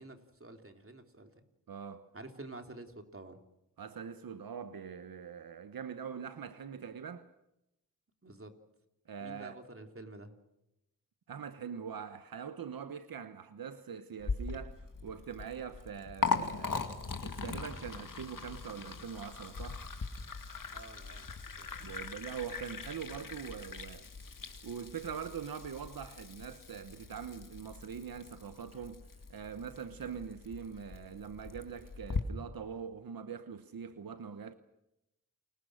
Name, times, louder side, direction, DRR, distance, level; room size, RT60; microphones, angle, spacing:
voice 1, 0.0-1.5 2.1-3.4 8.2-8.5 9.2-10.3 20.7-21.7, right 2 dB, 40° right, 3.4 m, -49 dB
voice 2, 1.7-2.1 3.8-7.3 9.1-9.6 11.3-16.9 17.2-19.9 21.8-24.1 24.6-29.0 29.3-34.5, right 7 dB, 90° right, 1.0 m, -43 dB
Liquid, 14.2-32.2, left 4 dB, 70° left, 2.2 m, -40 dB
29.5 x 21.5 x 6.4 m
cardioid pair, 45°, 34 cm